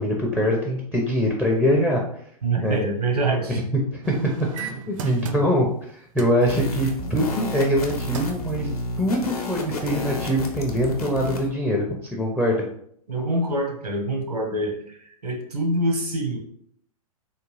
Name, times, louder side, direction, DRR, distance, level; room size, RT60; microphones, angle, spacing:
voice 1, 0.0-2.0 2.6-2.8 3.5-3.6 3.9-12.6, equal, 5° left, -1 dB, 0.4 m, -23 dB
voice 2, 2.4-3.6 5.1-5.4 13.1-16.4, right 2 dB, 85° right, 2 dB, 1.0 m, -25 dB
sound 1, 4.0-5.8 6.2-6.4 7.7-7.8 8.1-8.5 9.0-9.1, right 8 dB, 55° right, 0.5 m, -35 dB
sound 2, 6.4-11.5, left 1 dB, 75° left, 0.8 m, -31 dB
3.6 x 2.2 x 3.1 m, 0.68 s
figure-of-eight pair, 105°, 19 cm